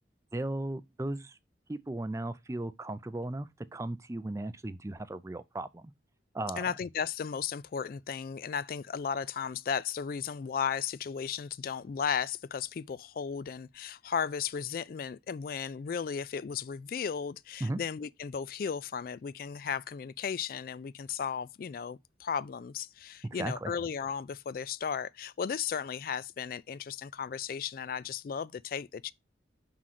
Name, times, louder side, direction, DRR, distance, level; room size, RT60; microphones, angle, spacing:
voice 1, 0.3-1.4 1.7-5.9 6.3-6.7 17.6-17.8 23.2-23.7, right 2 dB, 15° right, 0.4 m, -36 dB
voice 2, 6.6-29.1, left 7 dB, 50° left, 0.3 m, -35 dB
6.1 x 3.8 x 5.7 m
head